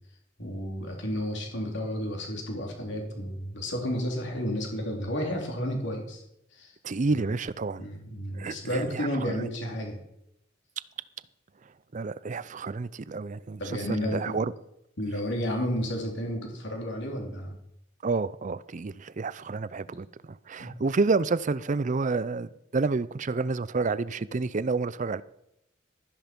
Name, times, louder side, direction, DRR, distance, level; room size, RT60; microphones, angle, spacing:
voice 1, 0.4-6.2 6.5-6.7 7.2-7.3 7.8-10.0 13.6-14.5 15.0-17.5 19.9-20.0 20.6-20.8, equal, 60° left, 3.3 m, -32 dB
voice 2, 6.8-7.9 8.3-9.5 11.9-14.5 18.0-25.2, right 4 dB, 40° right, 0.5 m, -29 dB
13.0 x 10.5 x 5.3 m
head